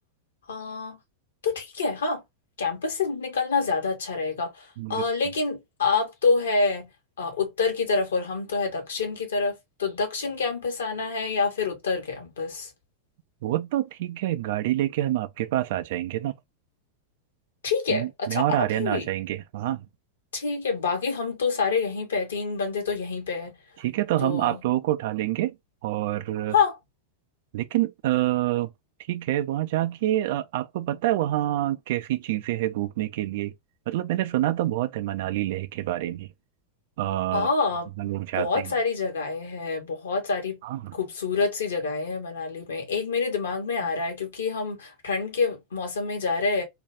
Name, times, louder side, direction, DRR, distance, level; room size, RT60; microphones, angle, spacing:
voice 1, 0.5-1.0 1.4-2.2 2.6-6.9 7.2-12.7 17.6-19.1 20.3-23.6 24.2-24.6 26.5-26.8 37.3-40.6 40.9-46.6, left 4 dB, 65° left, 1.0 m, -27 dB
voice 2, 13.4-16.3 17.9-19.9 23.8-25.6 25.8-26.6 27.5-28.7 29.1-33.5 33.9-36.3 37.0-37.5 38.0-38.7 40.6-40.9, right 14 dB, 50° right, 0.3 m, -27 dB
2.5 x 2.3 x 3.2 m
figure-of-eight pair, 90°, 0 cm